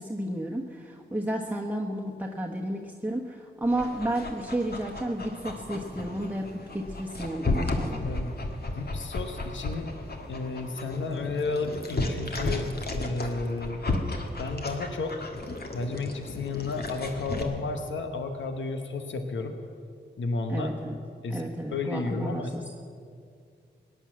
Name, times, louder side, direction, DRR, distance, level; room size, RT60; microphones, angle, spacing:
voice 1, 0.0-8.0 20.5-21.0 21.3-22.6, right 1 dB, 10° right, -1 dB, 1.2 m, -32 dB
Dog, 3.6-17.4, left 2 dB, 55° left, 1.8 m, -34 dB
voice 2, 8.0-8.4 8.7-9.9 10.3-13.8 14.4-15.1 15.7-19.6 20.2-20.7 21.2-21.4 21.7-22.5, left 3 dB, 90° left, 6 dB, 1.1 m, -32 dB
17.0 x 9.9 x 7.5 m, 2.3 s
cardioid pair, 55°, 19 cm